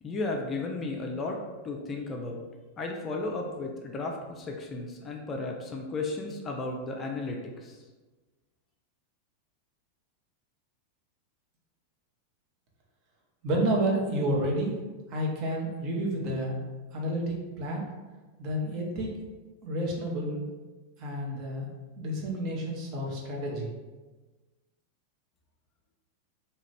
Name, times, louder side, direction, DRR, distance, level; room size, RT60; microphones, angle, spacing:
voice 1, 0.0-2.4 2.8-7.8, left 3 dB, 25° left, 1 dB, 0.4 m, -34 dB
voice 2, 13.4-14.8 15.1-16.6 16.9-17.8 18.4-19.1 19.6-20.4 21.0-21.7 22.0-23.7, right 1 dB, 40° right, -1 dB, 0.7 m, -30 dB
2.8 x 2.4 x 3.1 m, 1.3 s
figure-of-eight pair, 90°, 0 cm